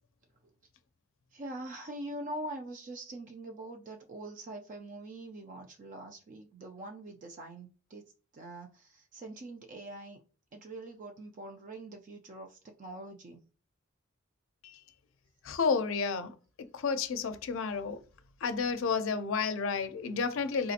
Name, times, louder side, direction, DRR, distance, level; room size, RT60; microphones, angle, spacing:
voice 1, 1.3-8.0 8.3-10.2 10.5-13.4, right 1 dB, 40° right, 0.4 m, -43 dB
voice 2, 15.4-16.3 16.7-18.0 18.4-20.7, left 5 dB, 70° left, 0.4 m, -31 dB
3.7 x 2.7 x 2.4 m
head